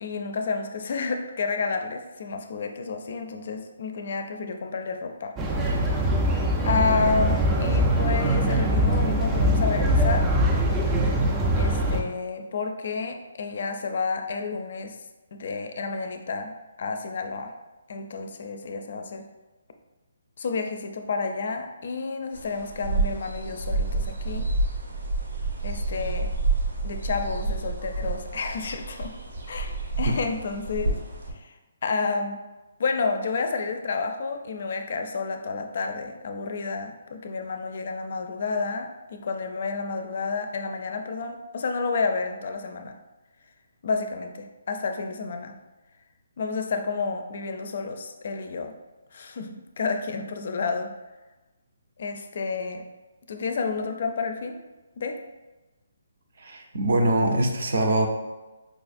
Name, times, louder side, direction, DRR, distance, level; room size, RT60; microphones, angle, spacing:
voice 1, 0.0-5.3 5.7-6.1 6.6-10.3 11.6-15.0 15.3-17.5 17.9-19.3 20.4-24.5 25.6-26.3 26.8-29.1 29.5-31.0 31.3-31.5 31.8-32.4 32.8-43.0 43.8-45.6 46.4-48.7 49.1-50.9 52.0-52.8 53.3-54.6 55.0-55.1, left 4 dB, 55° left, 6 dB, 0.4 m, -30 dB
sound 1, 5.4-12.0, right 1 dB, 15° right, 0.3 m, -22 dB
sound 2, 22.3-31.3, right 3 dB, 85° right, 0.9 m, -29 dB
voice 2, 56.4-58.1, right 1 dB, 60° right, 3 dB, 0.6 m, -23 dB
4.7 x 2.4 x 2.5 m, 1.1 s
hypercardioid pair, 160°, 0 cm